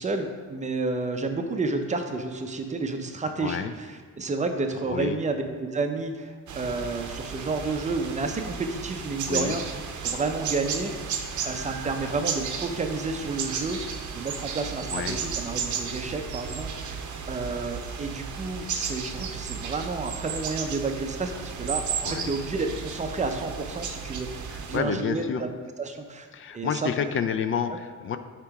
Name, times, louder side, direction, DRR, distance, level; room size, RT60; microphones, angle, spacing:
voice 1, 0.0-9.6 10.0-13.8 14.1-21.8 22.1-26.3 26.5-26.9, right 3 dB, 25° right, 5 dB, 0.5 m, -31 dB
voice 2, 3.4-3.7 4.9-5.2 9.3-9.6 14.9-15.2 22.1-22.3 24.7-25.4 26.3-28.2, left 7 dB, 45° left, 10 dB, 0.4 m, -29 dB
sound 1, 6.5-24.8, right 6 dB, 70° right, 0.7 m, -34 dB
8.3 x 3.0 x 4.6 m, 1.5 s
cardioid pair, 135°, 30 cm